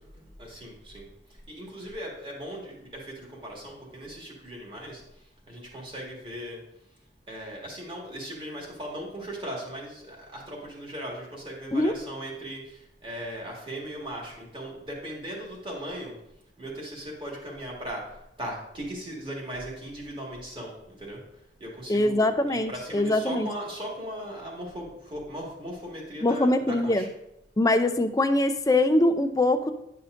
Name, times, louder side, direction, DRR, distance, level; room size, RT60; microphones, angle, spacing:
voice 1, 0.1-1.0 1.5-6.6 7.3-16.1 16.6-21.2 21.6-27.1, equal, 30° right, -2 dB, 1.8 m, -38 dB
voice 2, 21.9-23.5 26.2-27.0 27.6-29.7, left 2 dB, 20° left, 8 dB, 0.4 m, -23 dB
10.0 x 5.6 x 2.6 m, 0.83 s
head